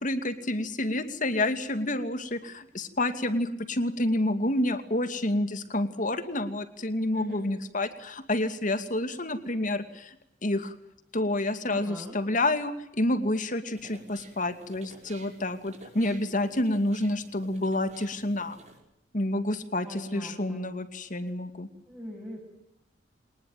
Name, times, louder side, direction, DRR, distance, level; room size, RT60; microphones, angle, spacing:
voice 1, 0.0-10.2 10.4-10.7 11.1-18.6 19.1-21.7, left 1 dB, 45° left, 9 dB, 2.5 m, -29 dB
voice 2, 7.1-7.4 11.6-12.1 19.8-20.7 21.9-22.4, left 1 dB, 5° right, -5 dB, 7.9 m, -40 dB
sound 1, 13.7-18.8, right 2 dB, 40° right, 6.0 m, -53 dB
26.0 x 20.0 x 9.1 m, 0.78 s
head